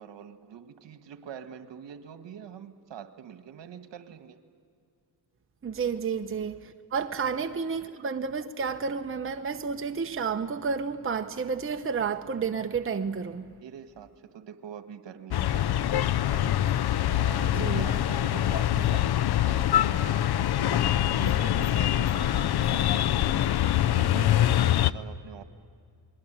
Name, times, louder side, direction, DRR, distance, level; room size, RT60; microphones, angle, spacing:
voice 1, 0.0-4.4 7.1-7.2 13.6-16.6 17.1-25.4, right 8 dB, 65° right, 1.7 m, -44 dB
voice 2, 5.6-13.4 17.6-17.9, right 5 dB, 25° right, 1.0 m, -31 dB
sound 1, 15.3-24.9, left 12 dB, 55° left, 0.7 m, -24 dB
28.5 x 21.0 x 9.0 m
cardioid pair, 70°, 47 cm